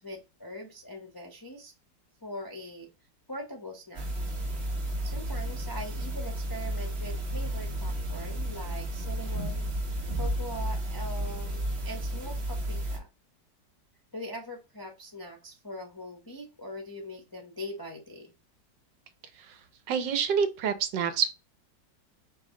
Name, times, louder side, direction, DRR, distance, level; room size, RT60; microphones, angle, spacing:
voice 1, 0.0-1.7 2.2-2.9 3.3-4.1 5.0-9.7 10.1-13.1 14.1-18.3, left 1 dB, 30° left, 0.4 m, -42 dB
sound 1, 3.9-13.0, right 1 dB, 40° right, 1.1 m, -32 dB
voice 2, 19.9-21.3, right 7 dB, 75° right, 1.4 m, -27 dB
5.4 x 2.4 x 3.7 m
omnidirectional pair, 1.9 m